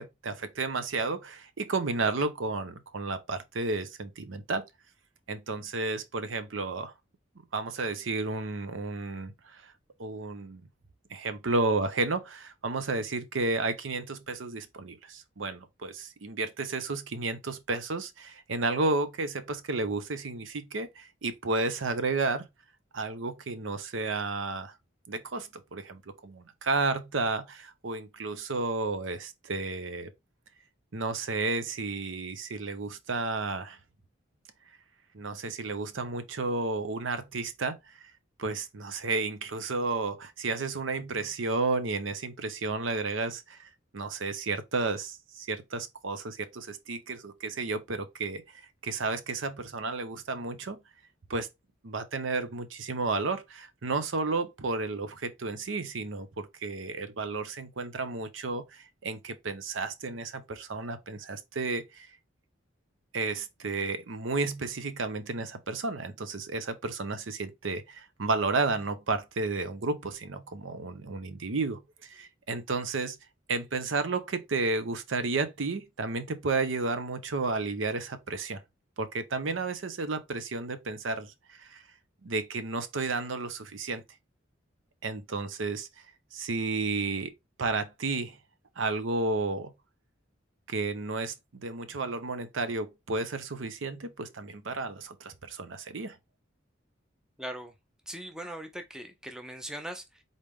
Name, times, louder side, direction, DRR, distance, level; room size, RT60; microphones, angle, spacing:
voice 1, 0.0-4.6 5.3-6.9 7.5-9.7 10.0-10.6 11.1-22.5 22.9-24.7 25.1-30.1 30.9-33.8 35.1-38.1 38.4-50.8 51.3-51.5 51.8-62.1 63.1-73.2 73.5-78.6 79.0-81.8 82.2-84.0 85.0-85.9 86.3-87.3 87.6-88.4 88.8-89.7 90.7-91.3 91.6-96.2, right 3 dB, 80° right, 0.7 m, -32 dB
voice 2, 97.4-97.7 98.1-100.2, right 1 dB, 5° right, 0.6 m, -40 dB
4.0 x 3.3 x 3.5 m
head